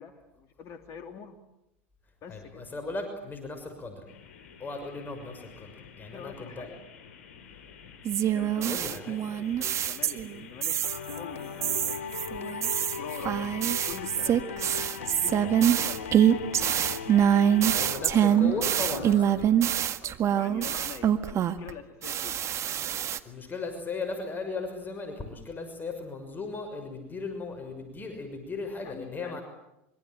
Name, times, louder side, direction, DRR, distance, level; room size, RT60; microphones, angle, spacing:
voice 1, 0.0-1.4 2.2-2.6 6.0-6.8 8.3-9.0 9.3-10.8 11.1-12.0 12.6-13.4 13.8-14.6 14.9-16.1 20.0-22.4 28.8-29.4, left 7 dB, 45° left, 6 dB, 3.0 m, -45 dB
voice 2, 2.3-4.1 4.6-6.7 8.7-9.2 15.4-15.6 17.7-19.5 23.2-29.4, left 3 dB, 25° left, 6 dB, 6.2 m, -37 dB
sound 1, 4.1-17.9, left 7 dB, 70° left, 7.1 m, -48 dB
sound 2, 8.0-10.3 10.6-11.2 11.6-21.7 22.0-23.2, right 10 dB, 40° right, 1.8 m, -25 dB
sound 3, 10.8-19.7, left 6 dB, 90° left, 1.7 m, -38 dB
25.5 x 24.5 x 9.3 m, 0.85 s
hypercardioid pair, 85°, 7 cm